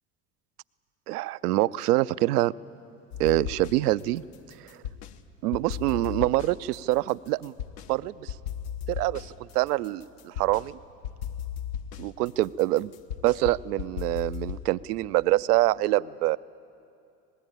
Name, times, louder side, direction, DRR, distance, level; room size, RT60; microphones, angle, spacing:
voice 1, 1.1-2.5 3.2-4.2 5.4-7.5 7.9-8.3 8.9-10.8 12.0-12.9 13.2-16.4, right 17 dB, 70° right, 17 dB, 0.6 m, -25 dB
sound 1, 3.1-4.0 4.3-5.2 5.5-7.9 8.3-10.7 11.0-14.7, left 9 dB, 70° left, 1.2 m, -36 dB
25.5 x 20.0 x 8.9 m, 2.5 s
figure-of-eight pair, 70°, 48 cm